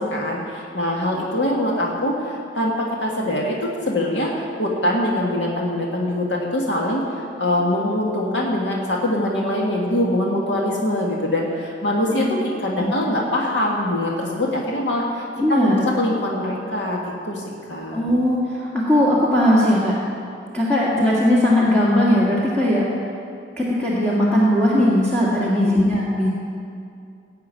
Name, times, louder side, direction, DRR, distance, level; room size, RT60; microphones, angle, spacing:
voice 1, 0.0-3.6 3.9-7.0 7.4-15.2 15.5-17.4 17.7-18.0 25.4-25.7, left 1 dB, 85° left, -2 dB, 1.9 m, -23 dB
voice 2, 15.4-15.8 17.9-19.9 20.5-22.8 23.6-26.3, left 1 dB, 5° left, -8 dB, 1.8 m, -18 dB
16.0 x 5.7 x 9.0 m, 2.5 s
head